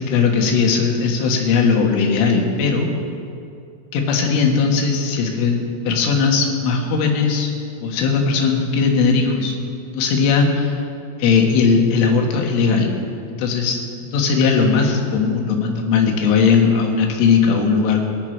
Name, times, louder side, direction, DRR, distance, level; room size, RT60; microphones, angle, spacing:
voice 1, 0.1-2.9 3.9-7.5 7.8-9.6 9.9-10.8 11.2-12.9 13.4-18.0, left 5 dB, 85° left, 2 dB, 4.2 m, -18 dB
23.0 x 11.5 x 4.6 m, 2.5 s
omnidirectional pair, 5.5 m